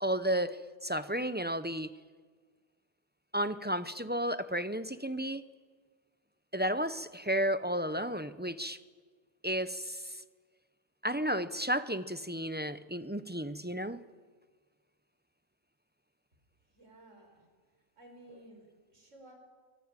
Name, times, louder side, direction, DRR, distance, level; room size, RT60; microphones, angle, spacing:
voice 1, 0.0-1.9 3.3-5.4 6.5-8.8 9.4-10.2 11.0-14.0, equal, 10° right, 12 dB, 0.5 m, -33 dB
voice 2, 16.7-17.5 18.0-19.3, right 1 dB, 70° right, 3 dB, 5.2 m, -55 dB
24.0 x 24.0 x 9.0 m, 1.5 s
omnidirectional pair, 1.3 m